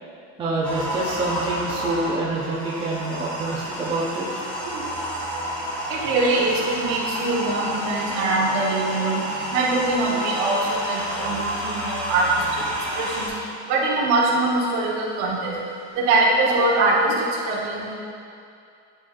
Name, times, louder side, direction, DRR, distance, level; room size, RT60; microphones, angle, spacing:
voice 1, 0.4-4.3 12.9-13.2, right 2 dB, 15° right, -6 dB, 0.5 m, -27 dB
sound 1, 0.6-13.3, equal, 5° left, 1.1 m, -30 dB
voice 2, 5.9-9.2 9.5-12.3 12.5-12.6 12.9-13.3 13.7-15.5 16.0-18.0, right 2 dB, 60° right, -4 dB, 1.2 m, -23 dB
9.7 x 4.3 x 2.4 m, 2.5 s
cardioid pair, 175°, 34 cm